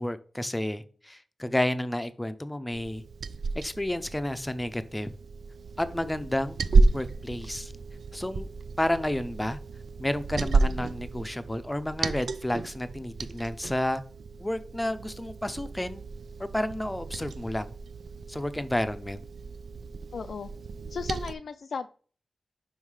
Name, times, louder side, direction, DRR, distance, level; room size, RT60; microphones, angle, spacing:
voice 1, 0.0-3.0 3.5-5.1 5.8-6.6 6.9-7.7 8.1-8.5 8.8-9.6 10.0-14.0 14.4-16.0 16.4-17.7 18.3-19.2, left 1 dB, 10° left, 12 dB, 0.5 m, -31 dB
Liquid, 2.7-21.3, right 3 dB, 75° right, 0.3 m, -31 dB
voice 2, 20.1-20.5 20.9-21.9, left 5 dB, 70° left, 7 dB, 0.3 m, -35 dB
5.5 x 5.3 x 4.8 m, 0.41 s
wide cardioid pair, 145°, 0 cm